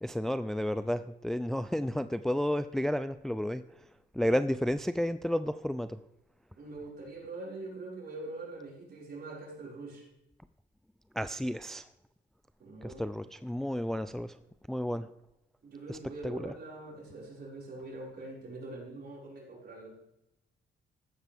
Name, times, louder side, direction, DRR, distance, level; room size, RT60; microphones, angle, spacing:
voice 1, 0.0-3.6 4.1-6.0 11.2-11.9 12.8-14.4 14.7-15.1 15.9-16.0 16.2-16.5, equal, ahead, 12 dB, 0.4 m, -31 dB
voice 2, 6.6-10.1 12.6-13.0 15.6-20.0, right 2 dB, 50° right, -4 dB, 5.6 m, -43 dB
14.5 x 12.0 x 3.6 m, 0.89 s
cardioid pair, 90°, 20 cm